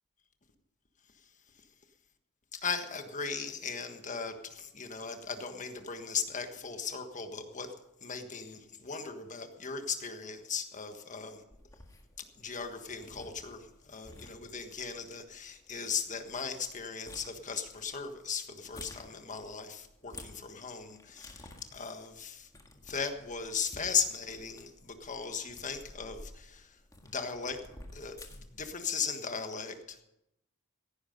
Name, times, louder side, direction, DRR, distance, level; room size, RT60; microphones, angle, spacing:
voice 1, 2.5-7.7 8.0-11.4 12.2-22.5 22.8-27.6 27.9-30.1, left 6 dB, 35° left, 7 dB, 1.5 m, -37 dB
sound 1, 11.5-28.7, left 1 dB, 15° left, 1.7 m, -53 dB
16.0 x 10.5 x 5.4 m, 0.83 s
head